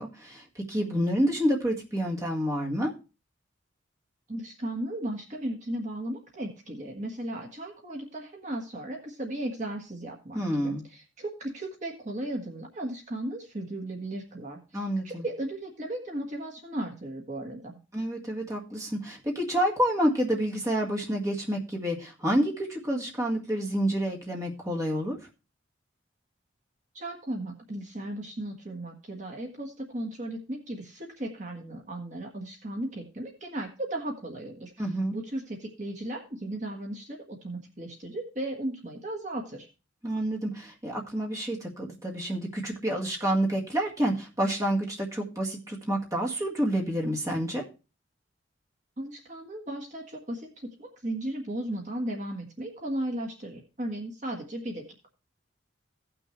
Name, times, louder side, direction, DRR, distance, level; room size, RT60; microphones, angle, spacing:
voice 1, 0.0-2.9 10.3-10.8 14.7-15.3 17.9-25.2 34.8-35.2 40.0-47.6, equal, 15° right, -1 dB, 1.8 m, -28 dB
voice 2, 4.3-14.6 15.0-17.8 26.9-34.7 35.1-39.7 49.0-55.1, right 1 dB, 40° right, 1 dB, 1.5 m, -36 dB
16.5 x 6.1 x 3.2 m, 0.32 s
head